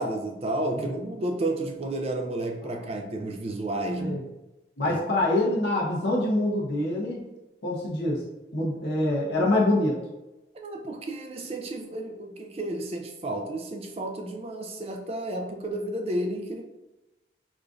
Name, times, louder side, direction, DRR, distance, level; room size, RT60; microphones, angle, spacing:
voice 1, 0.0-4.2 4.8-5.0 10.5-16.6, right 1 dB, 35° right, 3 dB, 0.4 m, -31 dB
voice 2, 4.8-7.2 7.6-8.2 8.5-10.0, left 1 dB, 80° left, -4 dB, 0.8 m, -25 dB
4.9 x 2.5 x 2.4 m, 1.0 s
head